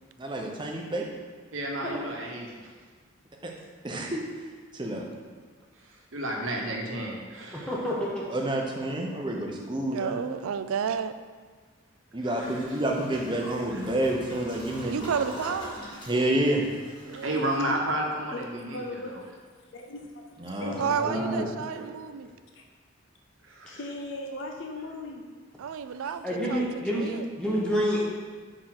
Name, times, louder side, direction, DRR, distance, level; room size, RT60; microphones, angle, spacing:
voice 1, 0.2-1.1 3.4-3.5 3.8-4.2 4.7-5.1 8.3-10.2 12.1-15.1 16.1-16.6 20.4-20.8 21.0-21.5, right 1 dB, 20° right, 0 dB, 0.7 m, -29 dB
voice 2, 1.5-2.7 6.1-7.7 12.2-12.6 13.7-13.8 17.1-19.2 23.4-23.8, right 1 dB, 70° right, 0 dB, 1.1 m, -32 dB
voice 3, 7.5-8.3 20.7-21.4 21.7-21.8 26.2-27.1 27.4-28.0, equal, 5° left, -5 dB, 1.1 m, -29 dB
voice 4, 9.9-11.1 14.8-15.7 17.0-17.5 20.8-22.3 25.6-27.3, right 7 dB, 90° right, 12 dB, 0.4 m, -31 dB
Toilet flush, 12.4-17.7, equal, 20° left, 1.9 m, -43 dB
voice 5, 18.7-21.1 22.5-22.6 23.7-25.2 26.0-26.2, left 2 dB, 65° left, 2 dB, 0.6 m, -39 dB
5.0 x 4.4 x 5.9 m, 1.5 s
head